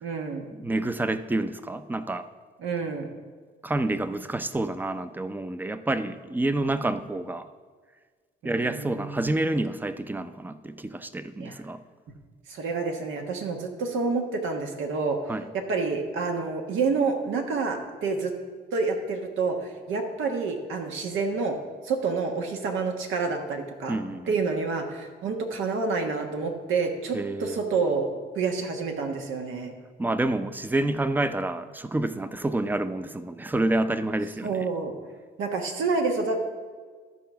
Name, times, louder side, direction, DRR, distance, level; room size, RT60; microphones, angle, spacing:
voice 1, 0.0-0.5 2.6-3.1 8.4-9.4 11.4-11.5 12.5-15.2 15.5-18.3 18.7-21.6 21.8-24.0 24.3-28.1 28.3-29.7 34.4-34.9 35.4-36.4, right 4 dB, 80° right, 4 dB, 1.3 m, -28 dB
voice 2, 0.5-2.3 3.6-7.5 8.4-11.8 15.3-15.5 23.9-24.3 27.1-27.7 30.0-34.7, right 2 dB, 10° right, 12 dB, 0.5 m, -28 dB
12.5 x 4.6 x 5.7 m, 1.5 s
cardioid pair, 90°, 20 cm